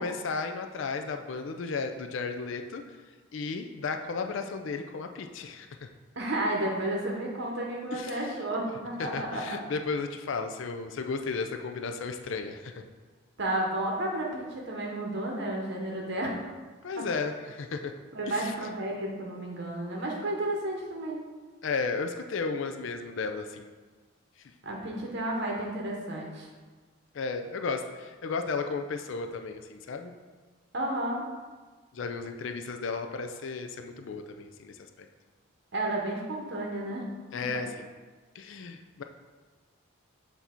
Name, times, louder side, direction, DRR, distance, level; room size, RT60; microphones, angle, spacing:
voice 1, 0.0-2.8 3.3-5.9 7.9-8.2 9.0-12.8 16.8-17.9 18.3-18.5 21.6-23.7 24.4-24.5 27.1-30.1 31.9-34.9 37.3-37.9 38.3-39.0, left 4 dB, 60° left, 6 dB, 0.4 m, -34 dB
voice 2, 6.2-9.6 13.4-16.4 18.1-21.2 24.6-26.5 30.7-31.2 35.7-37.1 37.5-37.6, right 1 dB, 50° right, -1 dB, 0.8 m, -32 dB
8.0 x 2.7 x 4.3 m, 1.4 s
head